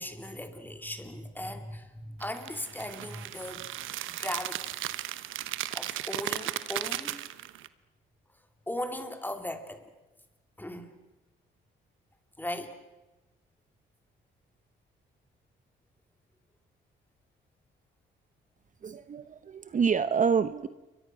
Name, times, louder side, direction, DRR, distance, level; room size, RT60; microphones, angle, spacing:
voice 1, 0.0-4.6 5.7-7.2 8.7-9.8 10.6-10.9 12.4-12.8, left 1 dB, 10° left, 6 dB, 3.2 m, -38 dB
sound 1, 2.2-7.7, right 13 dB, 85° right, 1.0 m, -36 dB
voice 2, 18.8-20.7, right 6 dB, 40° right, 12 dB, 0.9 m, -27 dB
29.0 x 23.5 x 6.1 m, 1.1 s
cardioid pair, 90°, 20 cm